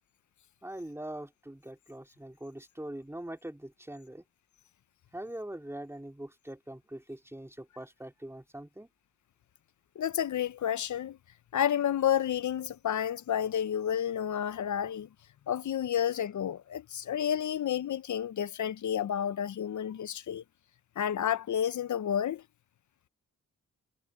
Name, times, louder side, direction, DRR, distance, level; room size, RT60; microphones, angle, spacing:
voice 1, 0.6-4.2 5.1-8.9, right 1 dB, 10° right, 2.8 m, -42 dB
voice 2, 10.0-11.2 11.5-15.1 15.5-20.4 21.0-22.4, left 9 dB, 65° left, 0.8 m, -30 dB
supercardioid pair, 50°, 32 cm